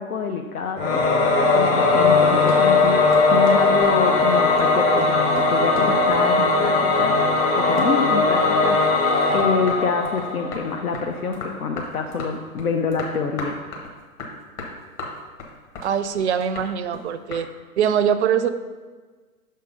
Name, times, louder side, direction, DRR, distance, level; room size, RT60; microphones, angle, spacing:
voice 1, 0.0-7.1 7.5-8.8 9.1-13.6, left 5 dB, 80° left, 4 dB, 0.6 m, -26 dB
Singing / Musical instrument, 0.8-10.8, left 3 dB, 15° left, 0.6 m, -19 dB
sound 1, 2.2-7.5 7.8-8.8 9.2-17.5, left 3 dB, 35° left, 1.2 m, -37 dB
voice 2, 15.8-17.5 17.8-18.5, right 8 dB, 50° right, 11 dB, 0.5 m, -22 dB
6.3 x 3.7 x 5.5 m, 1.4 s
figure-of-eight pair, 120°, 44 cm